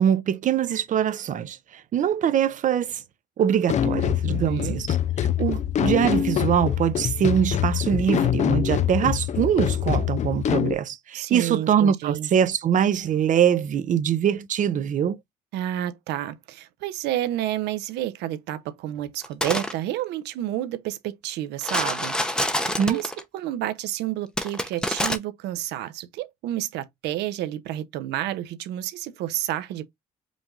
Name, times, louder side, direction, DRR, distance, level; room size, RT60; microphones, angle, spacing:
voice 1, 0.0-1.6 1.9-3.0 3.4-4.9 5.4-15.2 22.8-23.0, right 8 dB, 50° right, 0.7 m, -23 dB
sound 1, 3.7-10.7, left 9 dB, 45° left, 0.5 m, -24 dB
voice 2, 4.3-4.8 11.1-12.3 15.5-29.8, right 13 dB, 85° right, 0.9 m, -30 dB
sound 2, 19.2-19.7 21.6-23.2 24.4-25.2, left 1 dB, 5° left, 0.8 m, -26 dB
5.1 x 2.6 x 3.6 m
cardioid pair, 110°, 17 cm